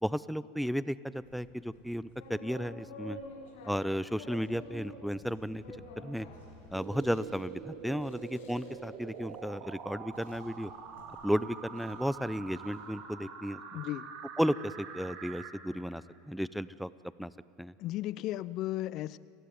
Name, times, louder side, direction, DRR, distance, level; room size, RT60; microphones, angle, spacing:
voice 1, 0.0-3.2 3.6-6.3 6.7-10.7 11.2-13.6 14.4-16.9 17.2-17.3 17.6-17.7, equal, ahead, 18 dB, 0.7 m, -34 dB
sound 1, 1.2-12.9, left 1 dB, 70° left, 7.0 m, -51 dB
sound 2, 6.7-15.5, right 6 dB, 55° right, 3.0 m, -45 dB
voice 2, 13.7-14.1 17.8-19.2, left 15 dB, 50° left, 20 dB, 0.6 m, -35 dB
29.0 x 16.5 x 9.4 m, 2.9 s
hypercardioid pair, 85°, 0 cm